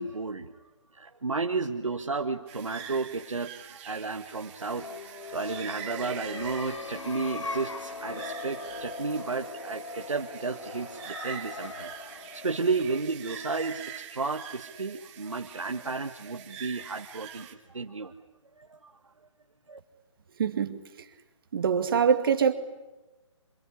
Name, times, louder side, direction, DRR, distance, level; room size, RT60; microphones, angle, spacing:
voice 1, 0.0-18.1 18.6-19.0 19.7-19.8, right 4 dB, 85° right, 1.7 m, -33 dB
sound 1, 2.5-17.5, right 9 dB, 25° right, 2.4 m, -45 dB
sound 2, 4.5-14.0, left 3 dB, 70° left, 2.3 m, -40 dB
voice 2, 20.4-20.8 21.5-22.5, right 7 dB, 45° right, 2.3 m, -24 dB
26.5 x 22.5 x 10.0 m
figure-of-eight pair, 155°, 16 cm